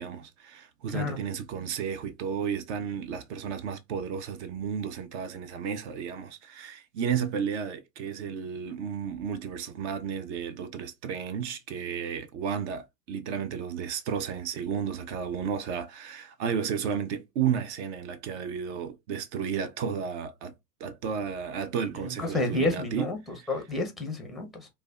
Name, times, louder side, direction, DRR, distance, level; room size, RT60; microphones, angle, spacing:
voice 1, 0.0-20.5 20.8-23.5, right 7 dB, 50° right, 0.5 m, -33 dB
voice 2, 22.0-24.7, left 2 dB, ahead, 0.5 m, -30 dB
3.2 x 2.2 x 2.3 m
hypercardioid pair, 100°, 47 cm